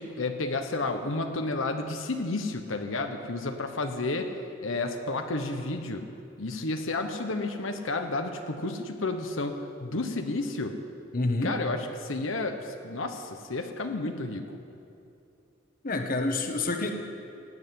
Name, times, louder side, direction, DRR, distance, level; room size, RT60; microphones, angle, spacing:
voice 1, 0.0-4.3 4.6-6.1 6.4-10.8 11.4-14.6, left 2 dB, 85° left, 5 dB, 1.1 m, -31 dB
voice 2, 11.1-11.6 15.8-16.9, left 2 dB, 45° left, 4 dB, 1.2 m, -28 dB
17.0 x 8.0 x 9.5 m, 2.7 s
head